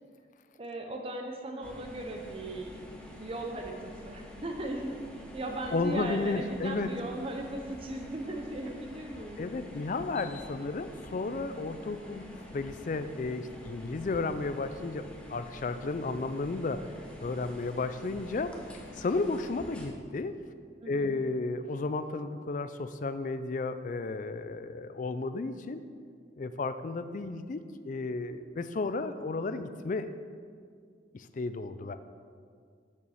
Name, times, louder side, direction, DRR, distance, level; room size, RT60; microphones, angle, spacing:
voice 1, 0.6-2.9 3.2-9.4 20.8-21.2, right 1 dB, 30° right, 3 dB, 0.5 m, -38 dB
sound 1, 1.6-19.9, left 1 dB, 5° left, 0.8 m, -47 dB
voice 2, 5.7-6.9 9.4-16.9 17.2-18.6 19.0-20.4 20.8-25.8 26.4-30.1 31.1-32.0, left 3 dB, 45° left, 11 dB, 0.4 m, -33 dB
6.8 x 5.7 x 6.3 m, 2.1 s
head